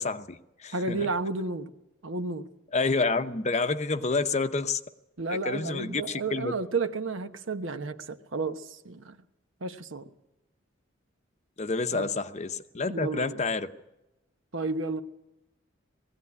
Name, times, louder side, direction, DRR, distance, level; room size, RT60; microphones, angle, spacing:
voice 1, 0.0-1.1 2.7-4.8 5.3-6.5 11.6-13.7, left 3 dB, 35° left, 0.8 m, -29 dB
voice 2, 0.7-1.7 2.0-2.5 5.2-9.2 9.6-10.1 11.9-12.1 12.9-13.4 14.5-15.0, right 3 dB, 70° right, 1.1 m, -32 dB
19.5 x 16.0 x 9.7 m
head